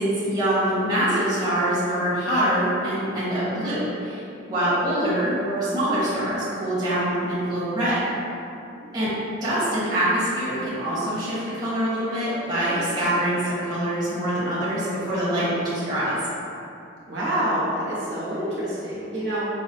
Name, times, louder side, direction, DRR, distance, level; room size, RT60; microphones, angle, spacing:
voice 1, 0.0-4.2 4.5-8.1 8.9-9.1 9.4-16.2, right 1 dB, 20° right, -12 dB, 1.0 m, -24 dB
voice 2, 17.1-19.5, right 1 dB, 70° right, -9 dB, 0.9 m, -27 dB
5.3 x 2.0 x 2.6 m, 2.7 s
head